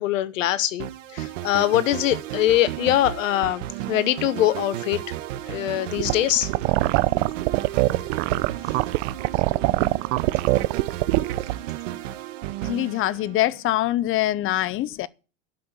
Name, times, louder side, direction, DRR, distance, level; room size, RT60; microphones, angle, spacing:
voice 1, 0.0-5.0 5.5-6.5, left 13 dB, 80° left, 1.2 m, -23 dB
sound 1, 0.8-13.7, right 13 dB, 75° right, 1.3 m, -33 dB
sound 2, 6.0-11.5, right 20 dB, 60° right, 0.8 m, -22 dB
voice 2, 12.6-15.1, left 15 dB, 35° left, 0.7 m, -24 dB
12.5 x 5.8 x 8.8 m
hypercardioid pair, 115°, 38 cm